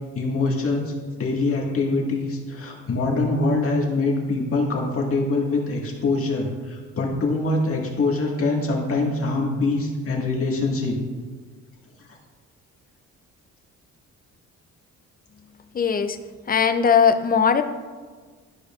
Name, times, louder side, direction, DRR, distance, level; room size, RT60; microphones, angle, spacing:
voice 1, 0.1-11.0, left 3 dB, 50° left, -1 dB, 1.8 m, -24 dB
voice 2, 15.7-16.2 16.5-17.6, left 7 dB, 30° left, 9 dB, 0.5 m, -19 dB
12.5 x 5.0 x 2.5 m, 1.5 s
cardioid pair, 90°, 30 cm